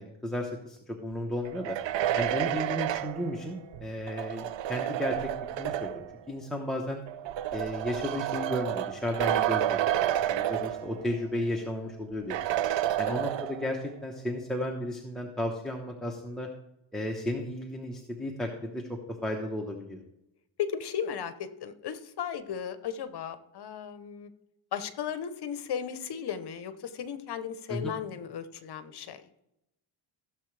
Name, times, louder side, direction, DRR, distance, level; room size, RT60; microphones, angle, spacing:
voice 1, 0.0-1.8 2.2-5.3 5.6-7.0 7.5-12.4 13.0-16.5 16.9-20.0 27.7-27.9, left 1 dB, ahead, -1 dB, 1.0 m, -34 dB
sound 1, 1.4-6.1 7.1-11.2 11.6-11.7 12.3-13.8, right 12 dB, 65° right, 0.7 m, -30 dB
voice 2, 20.6-24.3 24.7-29.2, left 8 dB, 50° left, 11 dB, 0.9 m, -36 dB
16.0 x 7.1 x 3.3 m, 0.86 s
cardioid pair, 135°, 49 cm